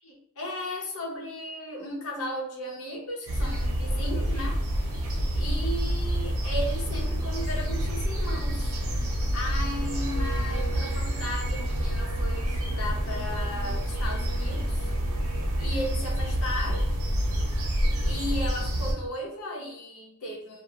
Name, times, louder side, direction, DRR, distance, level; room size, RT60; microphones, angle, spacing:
voice 1, 0.0-4.6 5.3-14.9 15.6-16.9 17.7-20.6, left 1 dB, 85° left, -1 dB, 0.9 m, -36 dB
sound 1, 3.3-18.9, equal, 85° right, 0.6 m, -28 dB
2.7 x 2.2 x 2.4 m, 0.76 s
head